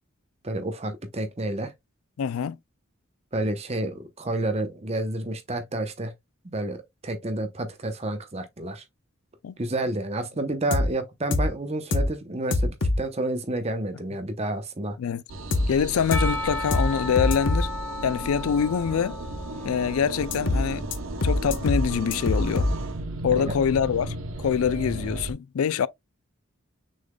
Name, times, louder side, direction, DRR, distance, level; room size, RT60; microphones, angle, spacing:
voice 1, 0.4-1.7 3.3-6.1 6.4-8.8 9.6-15.0 23.4-23.5, right 2 dB, 30° right, 0.7 m, -30 dB
voice 2, 2.2-2.6 9.4-9.5 15.0-15.2 15.7-17.7 18.0-19.2 19.6-20.9 21.2-22.7 23.2-25.9, left 7 dB, 85° left, 0.4 m, -25 dB
sound 1, 10.7-10.9 11.3-11.5 11.9-12.1 12.5-13.0 15.5-15.7 16.1-16.3 16.7-16.9 17.2-17.6 20.3-20.6 20.9-21.0 21.2-21.8 22.1-22.7, left 2 dB, 60° left, 0.7 m, -23 dB
sound 2, 15.3-25.3, right 2 dB, 70° right, 0.8 m, -34 dB
Percussion / Church bell, 16.1-20.9, left 2 dB, 10° left, 0.8 m, -35 dB
6.3 x 3.9 x 2.2 m
head